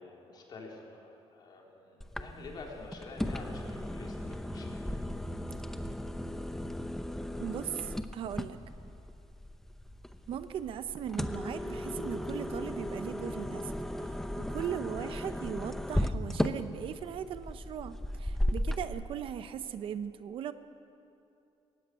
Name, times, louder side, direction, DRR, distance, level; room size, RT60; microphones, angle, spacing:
voice 1, 0.0-4.8 14.8-15.2 18.9-19.0, left 3 dB, 45° left, -1 dB, 3.7 m, -48 dB
sound 1, 2.0-18.8, left 1 dB, 5° left, 0.7 m, -36 dB
voice 2, 7.4-8.6 10.3-20.5, right 9 dB, 55° right, 11 dB, 0.7 m, -39 dB
20.0 x 16.0 x 9.6 m, 2.8 s
cardioid pair, 170°, 11 cm